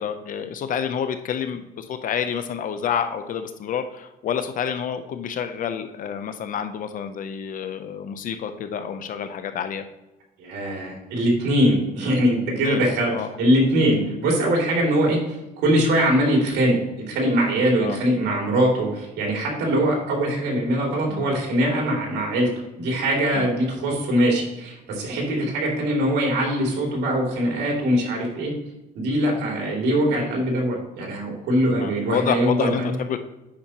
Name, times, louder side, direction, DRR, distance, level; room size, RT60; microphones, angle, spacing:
voice 1, 0.0-9.9 12.6-12.8 13.1-13.3 17.8-18.0 21.1-21.3 23.4-23.5 31.7-33.2, left 8 dB, 50° left, 9 dB, 0.6 m, -28 dB
voice 2, 10.4-16.8 17.1-22.5 22.8-28.5 28.9-32.9, right 1 dB, 80° right, -1 dB, 2.6 m, -22 dB
8.6 x 5.8 x 2.9 m, 0.99 s
cardioid pair, 110°, 17 cm